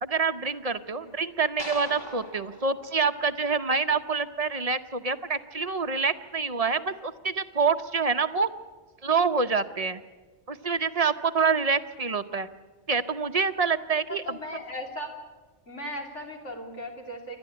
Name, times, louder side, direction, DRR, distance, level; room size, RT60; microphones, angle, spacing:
voice 1, 0.0-8.5 9.0-10.0 10.5-12.5 12.9-14.4, right 5 dB, 35° right, 10 dB, 0.7 m, -26 dB
sound 1, 1.6-3.9, equal, 20° left, 1.7 m, -42 dB
voice 2, 14.1-15.1 15.7-17.4, equal, 85° left, 2 dB, 3.3 m, -37 dB
28.5 x 12.5 x 9.7 m, 1.3 s
omnidirectional pair, 1.2 m